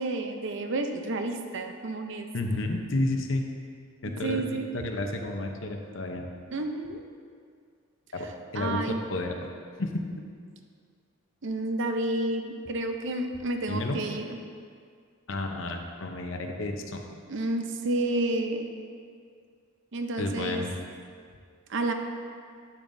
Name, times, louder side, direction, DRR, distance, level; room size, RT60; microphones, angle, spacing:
voice 1, 0.0-2.3 4.2-4.7 6.5-7.0 8.5-9.0 11.4-14.2 17.3-18.7 19.9-20.6 21.7-21.9, right 2 dB, 60° right, 5 dB, 0.6 m, -30 dB
voice 2, 2.3-3.4 4.0-6.3 8.1-8.8 9.1-9.4 9.8-10.1 13.7-14.0 15.3-17.0 20.2-20.7, left 2 dB, 65° left, 3 dB, 0.8 m, -31 dB
8.9 x 8.8 x 2.6 m, 2.1 s
head